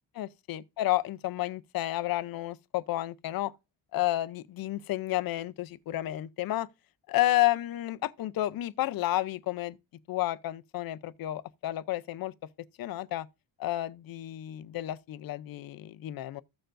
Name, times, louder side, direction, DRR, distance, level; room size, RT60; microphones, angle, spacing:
voice 1, 0.2-3.5 3.9-6.7 7.1-9.8 10.1-12.3 12.8-13.3 13.6-16.4, left 15 dB, 55° left, 0.6 m, -31 dB
15.0 x 6.7 x 2.6 m
cardioid pair, 180°, 43 cm